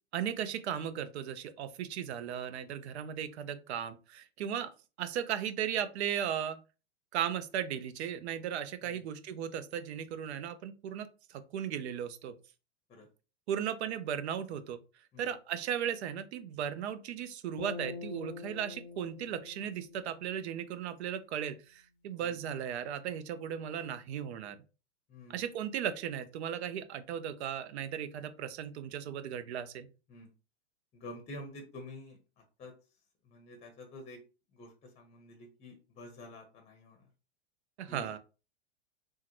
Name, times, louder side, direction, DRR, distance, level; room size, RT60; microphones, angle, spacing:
voice 1, 0.1-4.7 5.0-6.6 7.1-12.3 13.5-14.8 15.2-24.6 25.3-29.9 37.8-38.2, right 9 dB, 70° right, 12 dB, 0.6 m, -36 dB
sound 1, 17.6-20.9, left 5 dB, 55° left, 0.6 m, -45 dB
voice 2, 25.1-25.5 30.1-30.3 30.9-32.7 33.2-34.2 34.5-37.1 37.9-38.2, left 1 dB, 20° left, 4 dB, 0.7 m, -49 dB
3.6 x 2.1 x 3.0 m, 0.32 s
hypercardioid pair, 120°, 35 cm